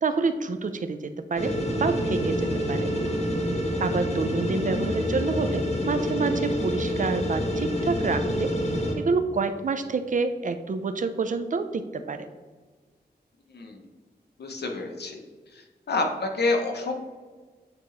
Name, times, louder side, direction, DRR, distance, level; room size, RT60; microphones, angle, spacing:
voice 1, 0.0-2.9 3.8-8.5 9.0-12.3, right 4 dB, 50° right, 9 dB, 0.5 m, -28 dB
sound 1, 1.4-8.9, equal, 40° left, 1.3 m, -27 dB
voice 2, 14.4-15.2 15.5-16.9, left 3 dB, 75° left, 3 dB, 0.9 m, -28 dB
8.7 x 3.0 x 3.9 m, 1.4 s
wide cardioid pair, 75°, 17 cm